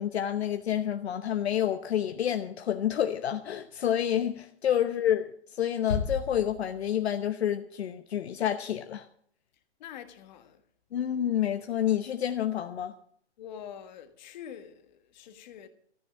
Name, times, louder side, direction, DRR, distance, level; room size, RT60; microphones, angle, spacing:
voice 1, 0.0-9.1 10.9-12.9, left 10 dB, 65° left, 1.0 m, -29 dB
Bass drum, 5.9-7.3, left 5 dB, 90° left, 3.7 m, -34 dB
voice 2, 9.8-10.6 13.4-15.7, left 9 dB, 40° left, 1.6 m, -45 dB
14.0 x 9.5 x 7.2 m
hypercardioid pair, 155°, 34 cm